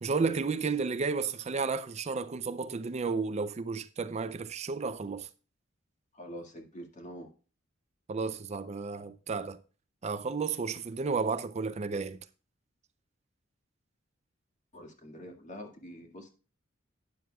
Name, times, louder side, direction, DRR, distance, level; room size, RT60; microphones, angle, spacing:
voice 1, 0.0-5.3 8.1-9.6 10.0-12.2, right 4 dB, 35° right, 0.4 m, -32 dB
voice 2, 6.1-7.3 14.7-16.3, equal, 40° left, 2.0 m, -45 dB
12.5 x 9.4 x 2.3 m
head